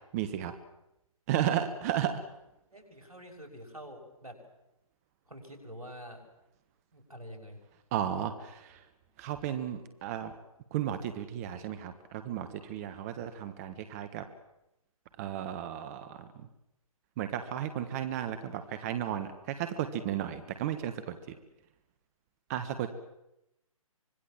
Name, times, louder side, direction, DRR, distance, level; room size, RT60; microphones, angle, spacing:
voice 1, 0.1-0.5 1.3-2.2 7.9-8.8 9.2-10.3 10.7-14.3 15.2-16.3 17.2-21.3 22.5-22.9, right 10 dB, 25° right, 10 dB, 1.4 m, -34 dB
voice 2, 2.7-4.4 5.3-6.2 6.9-7.6, equal, 90° right, 3 dB, 6.4 m, -47 dB
25.5 x 21.5 x 7.4 m, 0.88 s
figure-of-eight pair, 140°, 18 cm